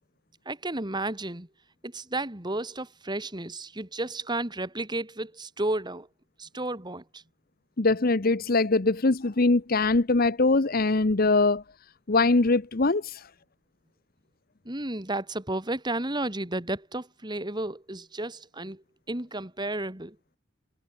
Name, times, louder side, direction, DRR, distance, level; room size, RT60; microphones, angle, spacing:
voice 1, 0.5-1.5 1.8-6.1 6.4-7.2 14.6-20.2, right 2 dB, 20° right, 2.4 m, -32 dB
voice 2, 7.8-11.6 12.1-13.2, left 3 dB, 50° left, 0.9 m, -22 dB
head